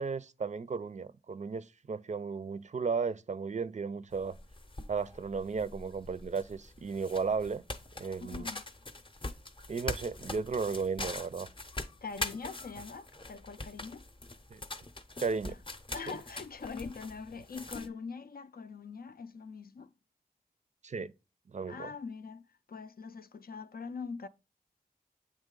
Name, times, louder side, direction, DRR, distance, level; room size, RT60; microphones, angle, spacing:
voice 1, 0.0-4.4 4.9-7.6 8.0-8.5 9.7-11.5 14.5-14.6 15.2-15.5 20.8-21.1 21.5-21.9, right 5 dB, 50° right, 0.4 m, -34 dB
sound 1, 4.1-17.9, left 2 dB, 35° left, 0.6 m, -43 dB
voice 2, 8.2-8.7 12.0-14.0 15.5-15.6 15.9-19.9 21.7-24.3, left 5 dB, 75° left, 0.4 m, -43 dB
8.1 x 3.2 x 3.7 m
wide cardioid pair, 55°, 16 cm